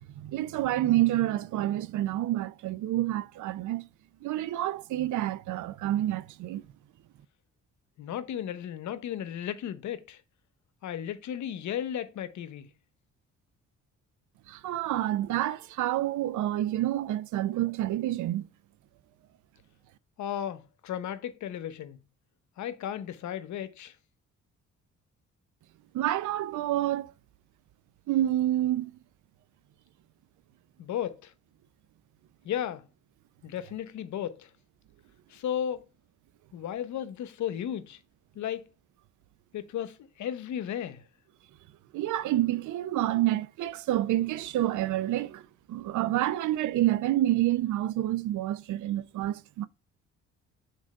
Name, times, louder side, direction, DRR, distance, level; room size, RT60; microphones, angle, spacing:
voice 1, 0.2-3.9 4.2-6.6 14.5-18.5 25.9-27.1 28.1-28.9 41.9-45.4 45.7-49.7, right 14 dB, 75° right, 0.6 m, -28 dB
voice 2, 8.0-10.2 10.8-12.7 20.2-22.0 22.6-23.9 30.8-31.3 32.4-32.9 33.4-34.5 35.3-35.9 36.5-38.0 38.4-38.7 39.5-41.0, left 10 dB, 70° left, 0.9 m, -34 dB
6.3 x 4.0 x 5.3 m
cardioid pair, 90°, 30 cm